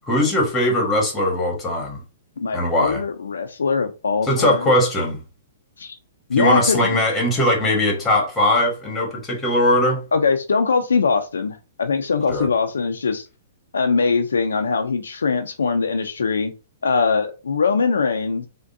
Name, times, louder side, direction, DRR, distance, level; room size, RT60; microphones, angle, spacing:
voice 1, 0.1-2.0 2.5-3.0 4.2-5.2 6.4-10.0 12.3-12.5, left 1 dB, 15° left, 1.3 m, -20 dB
voice 2, 2.4-4.7 5.8-6.0 6.3-7.0 10.1-13.3 13.7-16.5 16.8-18.5, left 5 dB, 85° left, 0.4 m, -22 dB
3.4 x 2.2 x 2.6 m
hypercardioid pair, 130°, 0 cm